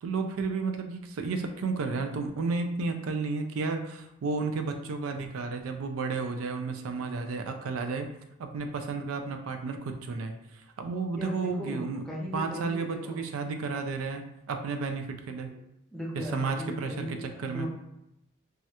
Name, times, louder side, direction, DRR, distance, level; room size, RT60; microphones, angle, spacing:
voice 1, 0.0-8.1 8.4-12.0 12.3-15.5 16.2-17.7, right 4 dB, 90° right, 6 dB, 0.4 m, -32 dB
voice 2, 11.2-13.3 15.5-15.6 15.9-17.7, equal, ahead, -5 dB, 0.5 m, -38 dB
3.1 x 2.4 x 2.8 m, 0.86 s
head